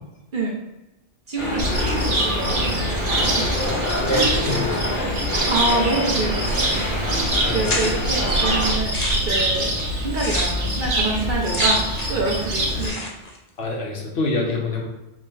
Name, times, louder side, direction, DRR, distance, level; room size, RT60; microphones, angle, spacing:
voice 1, 1.3-2.8 3.1-3.5 4.1-4.5 5.4-6.8 7.1-9.7 10.0-13.1, right 2 dB, 50° right, -1 dB, 0.8 m, -27 dB
sound 1, 1.4-8.7, left 1 dB, 85° left, 2.0 m, -26 dB
Cricket, 1.6-12.9, right 1 dB, 75° right, 1.3 m, -24 dB
voice 2, 4.1-4.7 7.4-7.6 13.6-14.9, left 2 dB, 60° left, -1 dB, 1.0 m, -25 dB
sound 2, 6.4-6.9 7.2-7.3 7.6-8.2 8.7-12.3 12.5-13.4, left 2 dB, 45° left, 0.6 m, -31 dB
4.9 x 2.1 x 3.7 m, 0.96 s
omnidirectional pair, 1.2 m